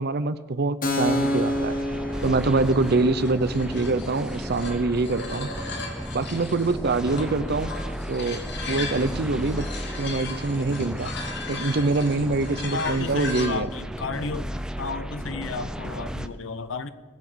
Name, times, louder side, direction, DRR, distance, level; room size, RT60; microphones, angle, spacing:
voice 1, 0.0-1.8 2.2-5.5 6.1-7.7 8.1-8.4 8.7-9.7 10.0-11.1 11.5-13.7, right 3 dB, 55° right, 14 dB, 0.6 m, -24 dB
Keyboard (musical), 0.8-8.1, left 1 dB, 45° left, 1.8 m, -32 dB
sound 1, 1.1-16.3, equal, 5° right, 0.5 m, -34 dB
sound 2, 2.1-13.5, left 4 dB, 60° left, 1.8 m, -38 dB
voice 2, 12.7-14.5 14.8-16.9, left 4 dB, 75° left, 13 dB, 0.8 m, -32 dB
20.0 x 7.1 x 6.3 m, 1.5 s
head